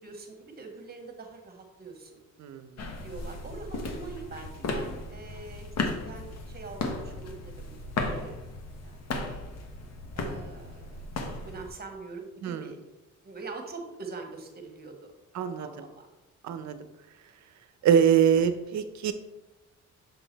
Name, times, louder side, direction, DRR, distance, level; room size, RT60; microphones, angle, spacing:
voice 1, 0.0-2.2 3.0-5.7 6.0-8.4 8.8-9.2 10.2-11.0 11.4-12.8 13.2-16.1, right 4 dB, 30° right, 4 dB, 1.4 m, -44 dB
voice 2, 2.4-2.9 12.4-12.7 15.3-15.7 16.4-16.8 17.8-19.1, right 8 dB, 65° right, 10 dB, 0.7 m, -24 dB
sound 1, 2.8-11.7, left 3 dB, 60° left, 1.0 m, -35 dB
6.9 x 3.9 x 4.0 m, 1.0 s
cardioid pair, 90°, 30 cm